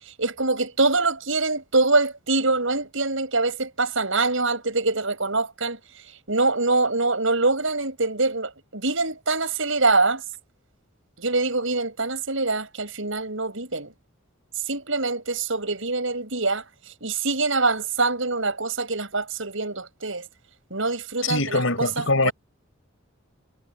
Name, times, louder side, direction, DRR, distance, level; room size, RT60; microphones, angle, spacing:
voice 1, 0.2-5.8 6.3-10.2 11.2-13.9 14.7-16.6 17.0-20.3 20.7-22.3, right 3 dB, 65° right, 7.6 m, -24 dB
voice 2, 21.2-22.3, left 2 dB, 70° left, 5.6 m, -23 dB
head